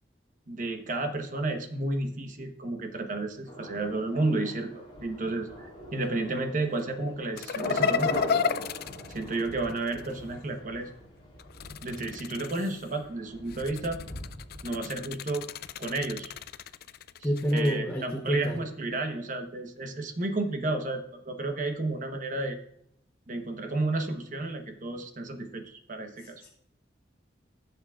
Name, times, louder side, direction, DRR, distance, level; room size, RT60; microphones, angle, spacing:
voice 1, 0.5-8.1 9.1-10.9 11.8-14.0 14.6-15.5 15.8-16.3 17.2-22.6 23.3-26.4, right 2 dB, 45° right, 5 dB, 1.1 m, -32 dB
Thunder, 3.5-15.3 15.6-15.7, equal, 30° left, 3.2 m, -41 dB
sound 1, 7.4-10.1 11.4-12.9 13.5-17.7, left 6 dB, 55° left, 0.3 m, -32 dB
voice 2, 17.2-18.6 26.4-26.5, equal, 10° left, -3 dB, 0.9 m, -27 dB
14.5 x 7.3 x 2.4 m, 0.73 s
head